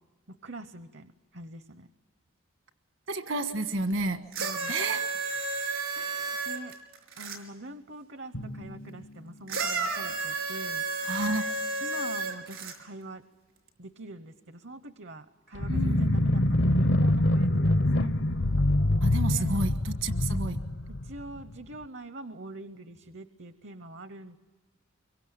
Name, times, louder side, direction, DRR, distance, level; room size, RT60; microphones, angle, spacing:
voice 1, 0.4-1.9 4.4-4.7 5.3-5.6 6.0-6.7 7.2-10.8 11.8-13.2 13.8-18.1 19.2-19.7 21.0-24.4, right 1 dB, 60° right, 11 dB, 0.8 m, -44 dB
voice 2, 3.1-4.2 4.7-5.0 11.0-11.5 15.7-16.1 19.0-20.6, right 2 dB, 75° right, 8 dB, 1.5 m, -31 dB
sound 1, 4.3-7.4 9.5-12.8 13.7-13.8, right 3 dB, 90° right, 5.1 m, -32 dB
Drum, 8.3-10.1, equal, 80° left, 2.5 m, -43 dB
sound 2, 15.5-21.5, left 1 dB, 60° left, 0.8 m, -25 dB
25.0 x 23.0 x 8.8 m, 1.3 s
head